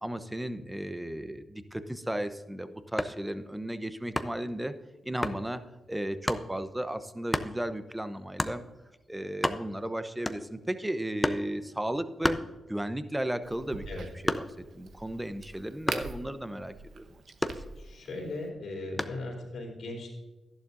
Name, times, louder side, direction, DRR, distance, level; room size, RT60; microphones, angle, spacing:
voice 1, 0.0-4.7 5.0-5.6 5.9-8.6 9.1-12.4 12.7-13.8 14.2-14.4 14.7-17.2, right 1 dB, 10° right, 11 dB, 0.9 m, -34 dB
sound 1, 2.8-3.3 4.2-4.5 5.2-5.4 6.3-6.5 7.3-7.6 8.4-8.6 9.1-9.2 9.3-9.9 10.3-10.7 11.2-11.5 12.2-13.0 13.4-14.7 15.9-16.2 17.4-18.1 19.0-19.3, left 1 dB, 15° left, 0.8 m, -31 dB
Crack, 13.4-18.5, right 4 dB, 75° right, 0.9 m, -45 dB
voice 2, 17.8-20.1, left 2 dB, 75° left, -2 dB, 3.6 m, -38 dB
12.0 x 11.0 x 2.7 m, 1.2 s
supercardioid pair, 45°, 0 cm